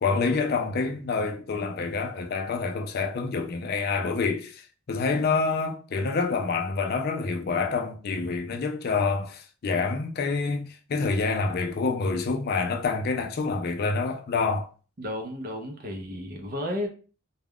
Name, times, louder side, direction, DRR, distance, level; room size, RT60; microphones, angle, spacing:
voice 1, 0.0-14.7, left 4 dB, 45° left, 0.4 m, -27 dB
voice 2, 15.0-16.9, left 1 dB, 45° right, 0.6 m, -33 dB
2.3 x 2.1 x 3.5 m
head